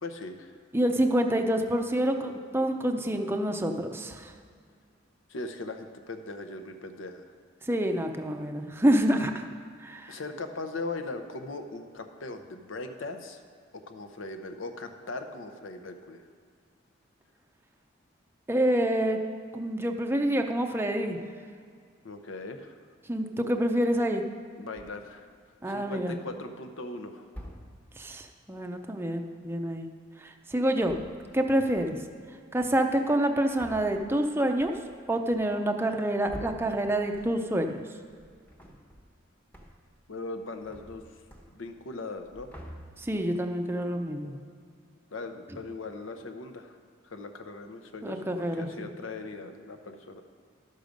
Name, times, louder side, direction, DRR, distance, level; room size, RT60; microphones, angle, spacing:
voice 1, 0.0-0.5 5.3-7.2 10.1-13.4 13.7-16.2 22.0-22.8 24.6-25.3 25.7-27.3 40.1-41.0 41.5-42.5 44.2-44.5 45.1-46.8 47.0-50.2, left 3 dB, 75° left, 6 dB, 0.8 m, -39 dB
voice 2, 0.7-4.3 7.7-9.5 9.8-10.2 18.5-19.2 19.5-21.2 23.1-24.2 25.6-26.2 28.0-29.9 30.2-31.0 31.3-32.0 32.5-34.7 35.1-37.8 43.0-44.4 48.0-48.9, right 1 dB, 10° right, 4 dB, 0.5 m, -27 dB
sound 1, 24.8-25.2 26.0-26.5 27.3-28.0 30.6-31.5 31.8-32.3 33.1-37.7 38.0-39.2 39.5-40.0 40.3-41.9 42.2-43.3, equal, 10° left, 0.9 m, -48 dB
12.0 x 6.5 x 5.2 m, 2.1 s
head